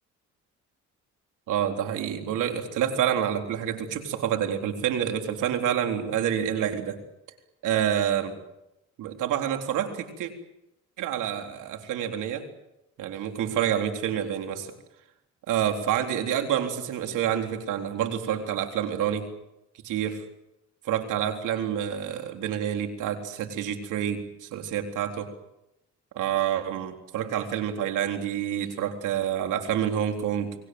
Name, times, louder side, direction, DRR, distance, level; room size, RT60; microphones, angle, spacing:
voice 1, 1.5-7.0 7.6-8.3 9.0-10.3 11.0-12.5 13.0-14.7 15.5-19.3 19.8-20.2 20.8-25.3 26.1-30.6, right 9 dB, 90° right, 5 dB, 3.9 m, -28 dB
30.0 x 21.0 x 7.9 m, 0.89 s
cardioid pair, 90°, 30 cm